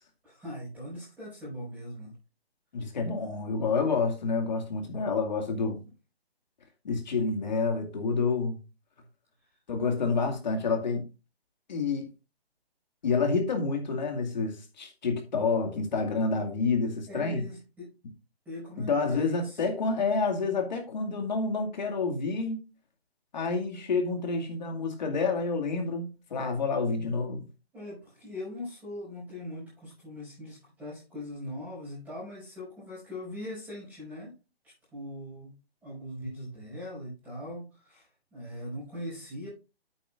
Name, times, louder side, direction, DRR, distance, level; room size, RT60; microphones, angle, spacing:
voice 1, 0.2-2.1 17.1-17.9 18.4-19.6 27.7-34.3 34.6-35.5 35.8-39.5, left 1 dB, 5° right, 5.7 m, -41 dB
voice 2, 2.7-5.8 6.8-8.6 9.7-11.0 11.7-12.1 13.0-17.4 18.8-22.6 23.3-27.5, left 4 dB, 45° left, 2.3 m, -28 dB
9.2 x 8.7 x 2.5 m
hypercardioid pair, 165°, 31 cm